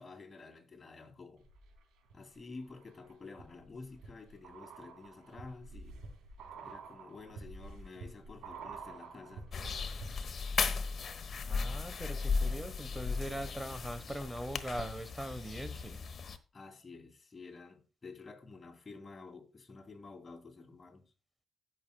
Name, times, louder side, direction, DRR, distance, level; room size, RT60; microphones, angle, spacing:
voice 1, 0.0-1.4 2.1-6.0 6.6-9.5 16.5-21.1, left 3 dB, 35° left, 2.7 m, -50 dB
sound 1, 1.4-2.1 2.6-10.5 10.7-10.8, right 4 dB, 80° right, 3.4 m, -49 dB
sound 2, 9.5-16.4, left 5 dB, 55° left, 1.0 m, -36 dB
voice 2, 11.5-16.0, right 1 dB, 10° right, 1.2 m, -41 dB
16.5 x 6.6 x 2.2 m
supercardioid pair, 60°, 0 cm